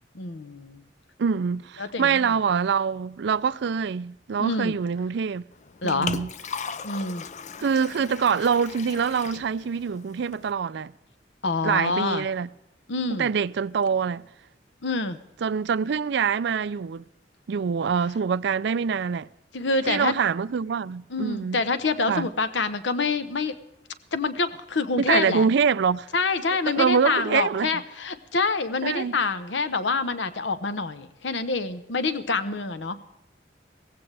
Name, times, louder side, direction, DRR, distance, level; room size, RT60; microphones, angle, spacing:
voice 1, 0.1-0.8 1.8-2.3 4.4-4.8 5.8-6.2 6.8-7.3 11.4-12.3 12.9-13.3 14.8-15.2 19.5-20.1 21.1-23.6 24.1-25.5 26.1-33.0, left 3 dB, 80° left, 1.0 m, -26 dB
voice 2, 1.2-5.4 5.8-6.3 7.6-10.9 11.6-12.5 13.2-14.2 15.4-17.0 17.5-19.3 19.9-21.6 22.1-22.3 25.1-26.1 26.7-27.7 28.8-29.1, right 6 dB, 65° right, 0.4 m, -25 dB
Liquid, 5.5-10.5, left 6 dB, 40° left, 0.5 m, -38 dB
17.5 x 15.5 x 3.4 m
head